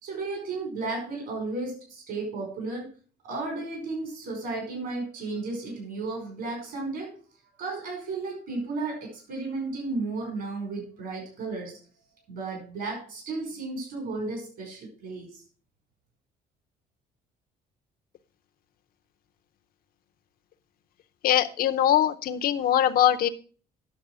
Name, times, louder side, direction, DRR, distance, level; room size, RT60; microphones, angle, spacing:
voice 1, 0.0-2.9 3.2-7.1 7.6-11.8 12.3-15.3, right 3 dB, 70° right, 1 dB, 5.3 m, -33 dB
voice 2, 21.2-23.3, left 11 dB, 60° left, 7 dB, 0.7 m, -22 dB
9.5 x 6.6 x 6.1 m, 0.41 s
cardioid pair, 110°, 17 cm